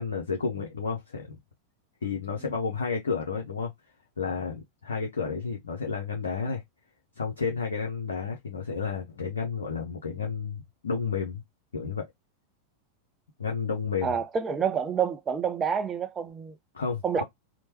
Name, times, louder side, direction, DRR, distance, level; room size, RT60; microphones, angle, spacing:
voice 1, 0.0-1.4 2.0-3.7 4.2-6.6 7.2-11.4 11.7-12.0 13.4-14.2 16.7-17.2, left 5 dB, 70° left, 0.6 m, -31 dB
voice 2, 14.0-16.6 17.0-17.2, right 7 dB, 20° right, 0.4 m, -28 dB
2.9 x 2.1 x 2.9 m
figure-of-eight pair, 90°, 0 cm